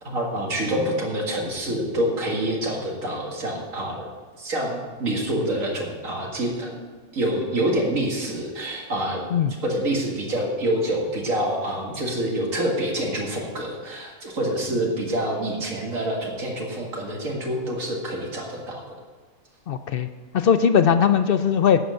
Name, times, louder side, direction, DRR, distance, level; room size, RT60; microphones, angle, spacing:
voice 1, 0.0-4.1 4.4-9.2 9.6-18.8, right 1 dB, 70° right, -1 dB, 2.3 m, -27 dB
voice 2, 19.7-20.1 20.3-21.8, left 7 dB, 65° left, 10 dB, 0.5 m, -19 dB
11.0 x 7.9 x 6.4 m, 1.4 s
omnidirectional pair, 1.4 m